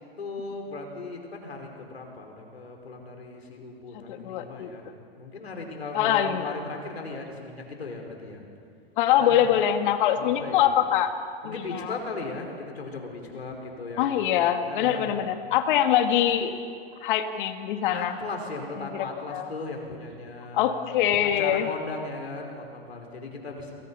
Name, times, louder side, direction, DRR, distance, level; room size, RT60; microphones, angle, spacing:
voice 1, 0.2-4.8 5.2-8.4 9.2-9.5 10.2-10.7 11.4-14.3 14.6-15.3 17.9-20.8 21.2-23.7, left 3 dB, 90° left, 2 dB, 5.2 m, -37 dB
voice 2, 4.1-4.7 5.9-6.6 9.0-11.1 11.4-12.0 14.0-16.5 17.0-18.2 18.8-19.5 20.5-21.7, left 10 dB, 55° left, 7 dB, 2.1 m, -24 dB
28.0 x 22.5 x 5.7 m, 2.2 s
hypercardioid pair, 120°, 31 cm